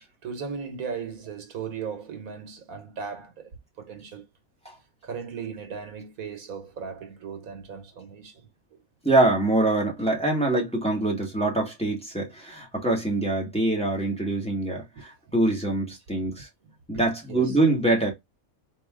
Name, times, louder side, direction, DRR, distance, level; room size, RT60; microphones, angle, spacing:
voice 1, 0.0-4.2 5.0-8.8 14.9-15.3 16.2-16.3 16.9-17.6, right 6 dB, 75° right, 1.4 m, -37 dB
voice 2, 9.0-16.5 16.9-18.1, right 2 dB, 5° left, 1.5 m, -24 dB
4.1 x 2.9 x 3.6 m
omnidirectional pair, 1.5 m